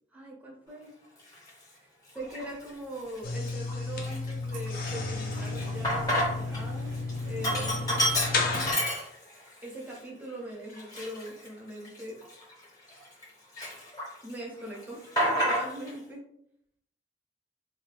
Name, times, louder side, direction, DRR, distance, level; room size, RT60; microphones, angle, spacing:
voice 1, 0.1-0.9 1.7-6.9 7.3-8.0 9.6-12.2 14.2-16.2, right 1 dB, 10° right, -2 dB, 0.6 m, -41 dB
Sink (filling or washing), 1.3-1.5 2.2-2.7 3.1-3.2 3.5-6.6 6.9-9.5 9.9-10.0 10.7-13.2 13.6-14.3 14.6-16.0, equal, 20° left, 0.8 m, -30 dB
sound 1, 2.2-2.6 2.9-8.7, right 1 dB, 90° right, 0.4 m, -43 dB
sound 2, 3.2-8.7, left 3 dB, 50° left, 0.5 m, -33 dB
2.6 x 2.2 x 3.2 m, 0.73 s
head